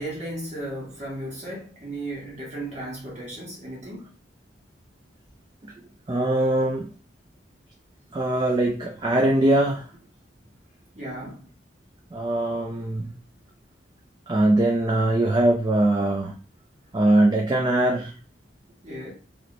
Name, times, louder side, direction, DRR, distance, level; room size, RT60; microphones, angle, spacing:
voice 1, 0.0-4.1 10.9-11.5 18.8-19.1, right 1 dB, 40° right, 1.6 m, -35 dB
voice 2, 6.1-6.9 8.1-9.9 12.1-13.1 14.3-16.4 16.9-18.1, right 1 dB, 25° right, 0.4 m, -21 dB
3.0 x 2.5 x 3.2 m
head